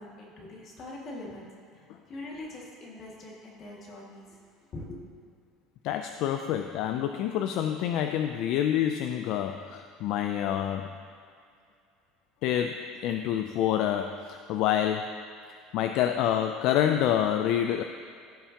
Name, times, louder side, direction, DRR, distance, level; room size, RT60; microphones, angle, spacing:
voice 1, 0.0-1.5 1.7-4.2 4.7-5.0, left 2 dB, 35° left, -3 dB, 2.0 m, -42 dB
voice 2, 5.8-11.0 12.4-15.2 15.5-17.8, left 10 dB, 60° left, 6 dB, 0.3 m, -27 dB
15.5 x 5.7 x 2.9 m, 2.4 s
cardioid pair, 145°, 0 cm